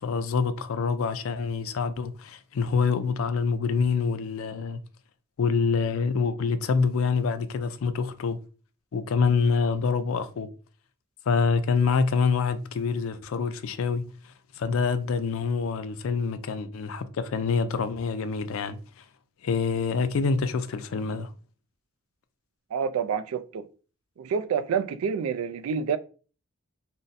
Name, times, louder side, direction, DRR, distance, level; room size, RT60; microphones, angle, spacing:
voice 1, 0.0-4.8 5.4-8.4 8.9-10.5 11.3-18.8 19.4-21.3, left 5 dB, 75° left, 0.4 m, -26 dB
voice 2, 22.7-23.7 24.2-26.0, right 6 dB, 85° right, 0.3 m, -28 dB
2.6 x 2.1 x 3.9 m
head